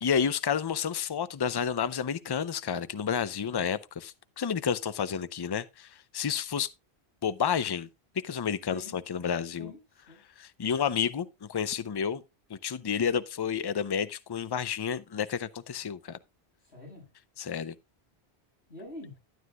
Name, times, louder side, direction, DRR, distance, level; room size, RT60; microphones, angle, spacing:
voice 1, 0.0-5.9 6.1-6.7 7.2-7.9 8.2-9.7 10.4-12.2 12.5-16.2 17.5-17.7, left 7 dB, 35° left, 0.4 m, -30 dB
voice 2, 9.5-10.2 16.6-17.1 18.7-19.2, left 2 dB, 85° left, 6.7 m, -46 dB
12.5 x 9.5 x 2.3 m
omnidirectional pair, 1.1 m